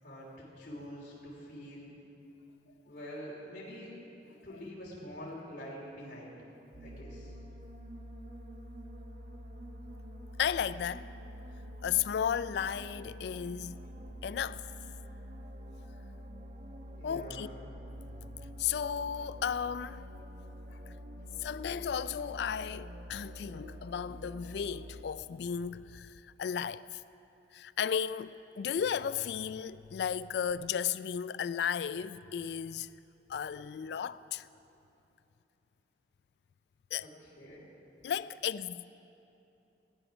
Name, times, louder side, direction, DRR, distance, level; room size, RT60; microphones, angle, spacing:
voice 1, 0.0-1.9 2.8-3.9 4.4-6.4 6.8-7.4 16.9-17.5 37.0-37.7, equal, 50° left, 3.2 m, -45 dB
sound 1, 6.7-25.0, equal, 50° right, 1.0 m, -47 dB
voice 2, 10.4-11.1 11.8-13.8 14.2-14.6 17.0-17.5 18.6-20.1 21.4-27.0 27.5-32.9 33.3-34.5 36.9-37.1 38.0-38.8, left 8 dB, 65° left, 0.3 m, -34 dB
18.0 x 10.0 x 6.0 m
head